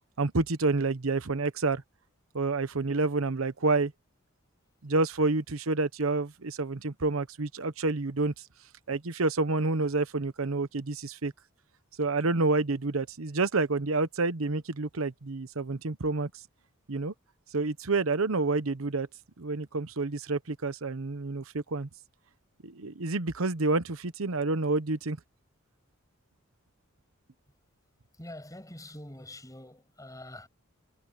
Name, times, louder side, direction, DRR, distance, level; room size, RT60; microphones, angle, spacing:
voice 1, 0.2-1.8 2.3-3.9 4.8-8.3 8.9-11.3 12.0-16.3 16.9-17.1 17.5-19.1 19.4-21.9 22.6-25.2, right 3 dB, 85° right, 1.0 m, -28 dB
voice 2, 28.1-30.5, left 1 dB, 15° left, 7.2 m, -45 dB
head